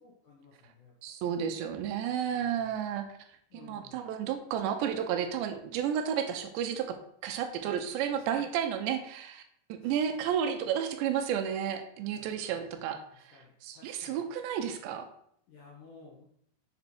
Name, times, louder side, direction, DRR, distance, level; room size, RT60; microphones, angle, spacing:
voice 1, 0.0-0.9 2.0-2.8 3.5-4.1 8.1-8.5 9.8-10.2 12.2-14.3 15.5-16.3, left 4 dB, 85° left, -3 dB, 1.8 m, -55 dB
voice 2, 1.0-3.1 3.5-7.0 7.2-9.4 9.7-15.1, right 8 dB, 80° right, 6 dB, 2.7 m, -32 dB
6.9 x 4.2 x 4.3 m, 0.69 s
omnidirectional pair, 5.2 m